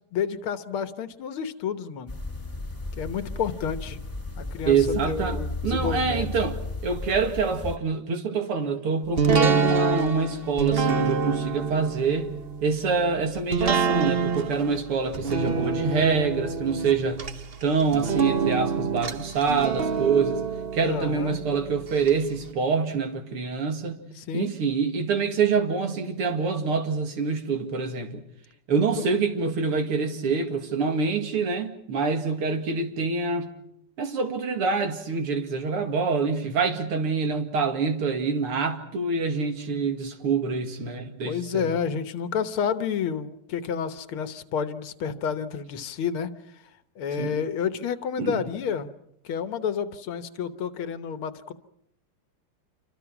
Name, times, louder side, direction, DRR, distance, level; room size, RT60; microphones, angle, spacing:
voice 1, 0.1-2.2 3.0-4.0 4.4-4.8 5.1-6.3 20.8-21.4 24.2-24.5 29.0-29.1 41.2-46.3 47.0-48.9 49.2-51.5, left 7 dB, 75° left, 2.0 m, -30 dB
sound 1, 2.1-7.8, left 2 dB, 5° left, 2.3 m, -34 dB
voice 2, 4.7-12.3 12.6-17.2 17.6-20.4 20.7-24.0 24.3-28.2 28.7-33.5 34.0-41.7 47.2-47.4 48.2-48.4, right 5 dB, 85° right, 3.1 m, -26 dB
sound 2, 9.2-22.1 22.5-22.6, right 5 dB, 45° right, 0.8 m, -27 dB
28.0 x 24.5 x 6.0 m
omnidirectional pair, 2.4 m